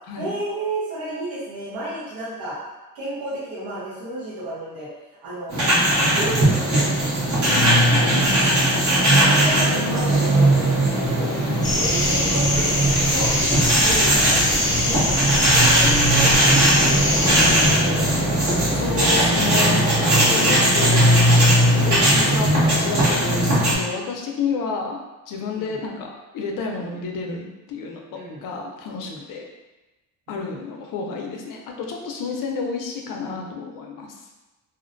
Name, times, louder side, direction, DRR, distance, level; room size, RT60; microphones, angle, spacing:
voice 1, 0.2-2.6 2.9-4.9 5.2-5.5 5.9-7.8 9.1-11.3 11.7-14.6 14.8-16.8 25.5-25.8 28.1-28.4 29.0-29.2 30.3-30.6, right 1 dB, 80° right, -9 dB, 0.9 m, -32 dB
sound 1, 5.5-23.8, right 1 dB, 55° right, 1.1 m, -18 dB
voice 2, 7.5-8.8 11.4-11.7 18.7-21.5 21.8-25.0 25.3-29.5 30.3-34.3, left 4 dB, 70° left, 1 dB, 0.5 m, -30 dB
sound 2, 11.6-17.7, left 1 dB, 10° left, 0.7 m, -22 dB
2.4 x 2.1 x 2.5 m, 1.1 s
cardioid pair, 125°, 35 cm